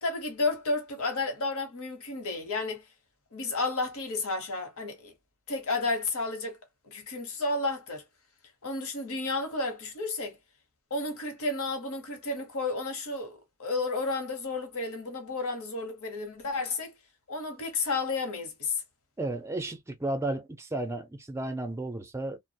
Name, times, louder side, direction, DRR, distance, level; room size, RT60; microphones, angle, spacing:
voice 1, 0.0-2.8 3.3-5.1 5.5-6.6 6.8-8.0 8.6-10.4 10.9-16.9 17.3-18.8, left 3 dB, 65° left, 0.9 m, -32 dB
voice 2, 19.2-22.4, right 2 dB, 10° right, 0.5 m, -33 dB
2.3 x 2.0 x 2.6 m
head